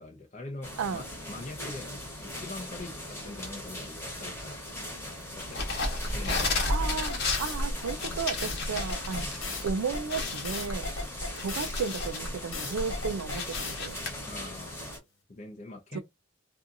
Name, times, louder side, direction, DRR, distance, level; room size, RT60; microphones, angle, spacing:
voice 1, 0.0-1.9 2.3-4.6 5.3-6.7 14.3-14.9 15.3-16.0, left 2 dB, 35° left, 0.5 m, -43 dB
sound 1, 0.6-15.0, left 1 dB, 10° left, 1.0 m, -40 dB
sound 2, 5.4-9.4 9.7-9.8 10.1-12.3 12.7-14.1, left 2 dB, 55° left, 1.0 m, -32 dB
sound 3, 5.8-13.7, left 2 dB, 75° left, 1.2 m, -35 dB
voice 2, 6.7-9.3 9.6-10.8 11.4-13.9 15.9-16.0, right 5 dB, 85° right, 0.4 m, -34 dB
2.6 x 2.4 x 2.5 m
head